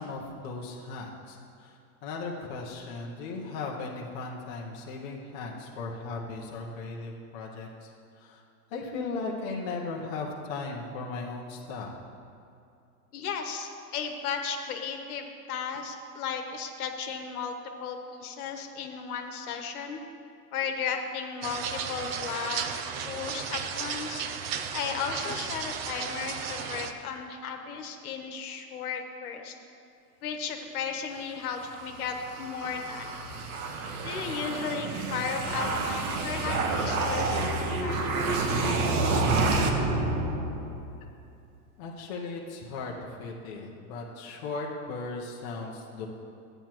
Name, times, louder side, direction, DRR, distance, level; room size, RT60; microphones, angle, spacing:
voice 1, 0.0-8.4 8.7-11.9 41.8-46.1, left 3 dB, 30° left, -2 dB, 0.7 m, -37 dB
voice 2, 13.1-17.5 17.8-20.0 20.5-22.6 23.0-24.3 24.7-29.5 30.2-33.1 34.0-37.4 37.8-38.0 39.1-39.4, left 6 dB, 65° left, 5 dB, 1.2 m, -35 dB
sound 1, 21.4-26.9, right 7 dB, 40° right, 0.5 m, -34 dB
sound 2, 31.6-41.0, right 3 dB, 65° right, 1.2 m, -29 dB
14.0 x 8.9 x 3.0 m, 2.5 s
supercardioid pair, 170°, 47 cm